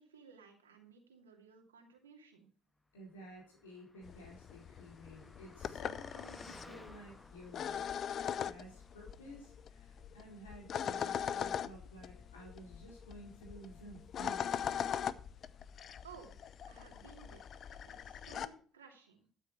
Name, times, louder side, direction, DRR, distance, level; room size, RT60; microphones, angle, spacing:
voice 1, 0.0-2.5 16.0-16.3 16.7-17.5 17.9-19.3, right 5 dB, 80° right, 3 dB, 2.4 m, -57 dB
voice 2, 2.9-15.1, equal, 80° left, -2 dB, 4.1 m, -54 dB
Car passing by, 3.4-9.3, left 1 dB, 10° left, 1.7 m, -57 dB
sound 1, 4.0-18.5, left 8 dB, 50° left, 0.7 m, -41 dB
13.0 x 9.1 x 4.2 m, 0.43 s
figure-of-eight pair, 55°, 0 cm